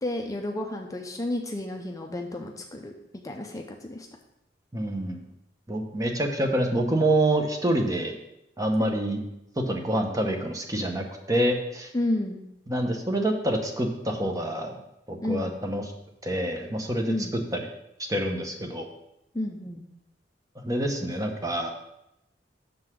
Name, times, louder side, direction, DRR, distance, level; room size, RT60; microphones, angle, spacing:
voice 1, 0.0-2.9 3.2-4.1 8.8-9.0 11.9-12.4 15.2-15.5 17.1-17.3 19.3-19.8, left 1 dB, 20° left, 2 dB, 0.5 m, -31 dB
voice 2, 4.7-5.2 5.7-8.2 8.6-9.2 9.6-11.9 12.7-14.8 15.1-15.8 16.2-17.1 18.1-18.9 20.6-21.7, right 1 dB, 20° right, 3 dB, 0.8 m, -26 dB
6.6 x 3.9 x 6.1 m, 0.85 s
head